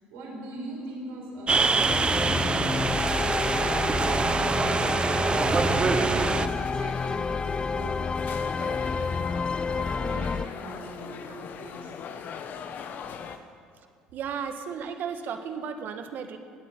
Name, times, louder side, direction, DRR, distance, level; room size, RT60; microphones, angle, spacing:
voice 1, 0.1-8.0 8.5-9.2 9.6-11.9 13.2-13.4, right 1 dB, 75° right, -1 dB, 5.4 m, -42 dB
sound 1, 1.5-6.5, right 4 dB, 30° right, 0.9 m, -25 dB
sound 2, 1.9-10.5, left 4 dB, 25° left, 0.3 m, -29 dB
sound 3, 5.5-13.4, left 7 dB, 55° left, 1.1 m, -39 dB
voice 2, 14.1-16.4, right 7 dB, 60° right, 7 dB, 1.5 m, -34 dB
20.0 x 8.5 x 8.4 m, 2.2 s
supercardioid pair, 75°, 4 cm